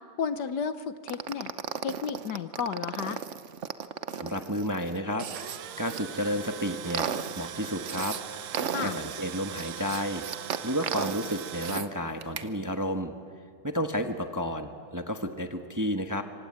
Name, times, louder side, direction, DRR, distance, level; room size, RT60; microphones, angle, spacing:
voice 1, 0.0-1.5 1.8-3.2 8.7-9.0, left 7 dB, 65° left, 12 dB, 1.4 m, -33 dB
sound 1, 1.1-6.0 6.5-8.2 8.5-11.9 12.2-12.5, right 7 dB, 50° right, 1.0 m, -35 dB
voice 2, 4.1-5.3 5.8-7.1 7.4-8.2 8.5-10.2 10.6-13.1 13.6-16.2, equal, 10° right, 6 dB, 1.2 m, -31 dB
Tools, 5.1-11.8, right 10 dB, 85° right, 1.7 m, -41 dB
26.5 x 25.5 x 8.8 m, 2.3 s
omnidirectional pair, 2.1 m